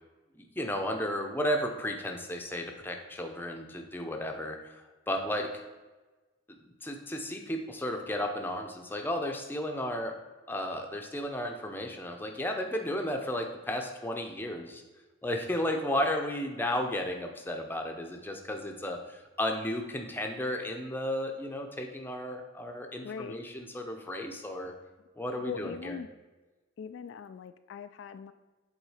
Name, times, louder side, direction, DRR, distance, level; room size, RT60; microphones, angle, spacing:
voice 1, 0.3-4.8 5.1-5.6 6.5-10.1 10.5-14.8 15.2-24.7 25.2-26.0, left 1 dB, 10° left, 3 dB, 0.6 m, -33 dB
voice 2, 23.0-23.4 25.5-26.1 26.8-28.3, left 6 dB, 70° left, 10 dB, 0.3 m, -41 dB
8.1 x 3.9 x 4.9 m, 1.2 s
head